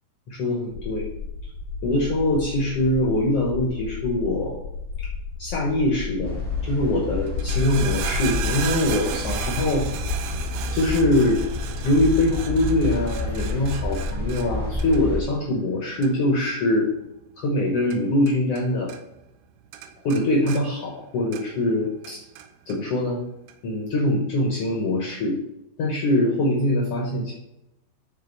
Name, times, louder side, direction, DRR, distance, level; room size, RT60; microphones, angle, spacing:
voice 1, 0.3-1.1 1.8-4.6 5.4-6.4 6.6-9.9 10.7-11.4 11.8-16.9 17.4-18.9 20.0-22.2 22.7-23.2 23.6-25.4 25.8-27.3, left 1 dB, 80° left, -1 dB, 1.3 m, -23 dB
sound 1, 0.7-14.3, left 5 dB, 60° left, 2.0 m, -33 dB
sound 2, 6.2-15.2, left 2 dB, 40° right, 0.8 m, -30 dB
sound 3, 7.3-18.6 18.9-19.5 19.7-21.7 22.0-22.8 23.5-23.6, right 10 dB, 85° right, 2.1 m, -36 dB
10.0 x 4.3 x 4.0 m, 0.87 s
omnidirectional pair, 4.7 m